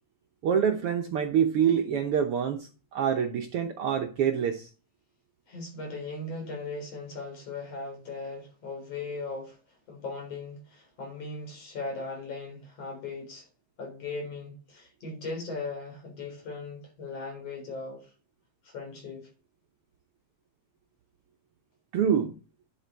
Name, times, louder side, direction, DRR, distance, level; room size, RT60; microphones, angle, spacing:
voice 1, 0.4-4.7 21.9-22.3, right 8 dB, 65° right, 1.5 m, -26 dB
voice 2, 5.5-13.5 13.8-18.1 18.6-19.3, left 3 dB, 55° left, 4.9 m, -38 dB
11.0 x 7.9 x 4.0 m
omnidirectional pair, 3.3 m